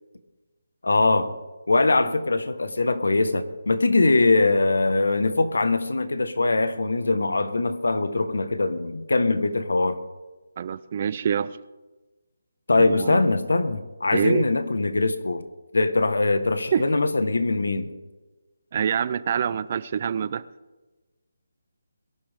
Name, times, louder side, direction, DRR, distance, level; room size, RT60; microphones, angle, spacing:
voice 1, 0.8-1.3 1.7-10.0 12.7-15.4 15.7-17.9, left 3 dB, 85° left, 11 dB, 1.5 m, -22 dB
voice 2, 10.6-11.6 12.7-13.2 14.1-14.5 16.7-16.9 18.7-20.4, right 8 dB, 35° right, 17 dB, 0.6 m, -26 dB
22.0 x 11.5 x 3.7 m, 1.2 s
hypercardioid pair, 165°, 0 cm